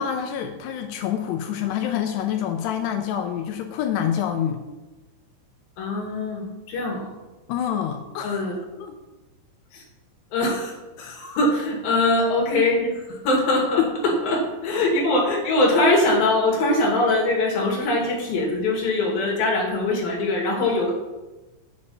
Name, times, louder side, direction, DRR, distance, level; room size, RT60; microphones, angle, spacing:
voice 1, 0.0-4.6 7.5-8.4 8.8-9.0 11.0-11.2, left 9 dB, 80° left, 6 dB, 2.6 m, -27 dB
voice 2, 5.8-7.1 8.2-8.5 9.7-9.8 10.3-20.9, left 2 dB, 60° left, -1 dB, 3.4 m, -22 dB
8.5 x 8.5 x 5.4 m, 1.1 s
omnidirectional pair, 5.3 m